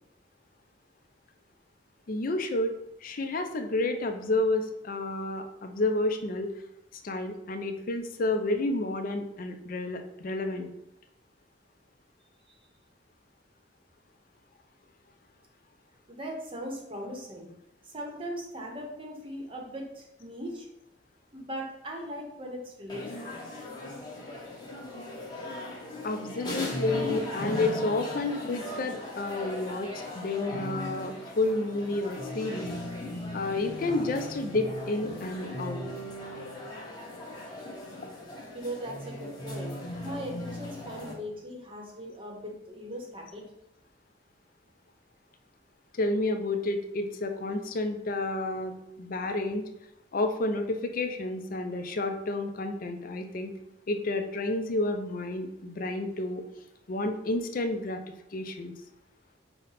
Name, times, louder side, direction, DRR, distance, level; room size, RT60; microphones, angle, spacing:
voice 1, 2.1-2.7 3.0-6.5 7.0-10.7 26.0-32.7 33.3-35.8 45.9-49.6 50.1-53.5 53.9-56.4 56.9-58.0 58.3-58.7, left 2 dB, 45° left, 6 dB, 0.4 m, -30 dB
voice 2, 16.1-17.5 17.8-20.7 21.3-23.4 38.5-39.7 40.0-43.4 48.9-49.0, equal, 30° right, 0 dB, 0.8 m, -39 dB
sound 1, 22.9-41.1, left 1 dB, 20° left, 1.0 m, -38 dB
5.6 x 2.1 x 4.0 m, 0.83 s
head